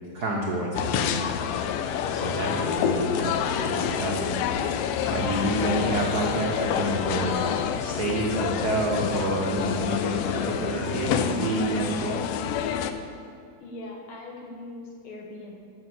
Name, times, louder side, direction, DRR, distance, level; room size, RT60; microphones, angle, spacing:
voice 1, 0.1-1.3 2.1-4.4 5.1-12.2, right 2 dB, 85° right, -1 dB, 0.8 m, -28 dB
sound 1, 0.7-12.9, left 8 dB, 80° left, 1.4 m, -28 dB
voice 2, 13.6-15.6, left 2 dB, 55° left, 0 dB, 1.9 m, -40 dB
12.0 x 5.8 x 7.8 m, 2.3 s
omnidirectional pair, 3.3 m